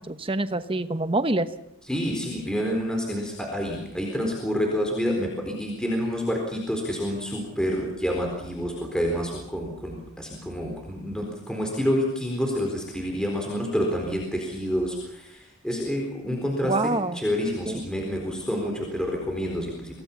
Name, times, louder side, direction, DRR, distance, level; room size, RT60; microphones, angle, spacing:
voice 1, 0.1-1.5 16.6-17.2 17.7-17.8, right 2 dB, 25° right, 11 dB, 1.1 m, -26 dB
voice 2, 1.9-20.0, equal, 5° left, 0 dB, 4.1 m, -28 dB
26.5 x 18.5 x 7.2 m, 0.82 s
head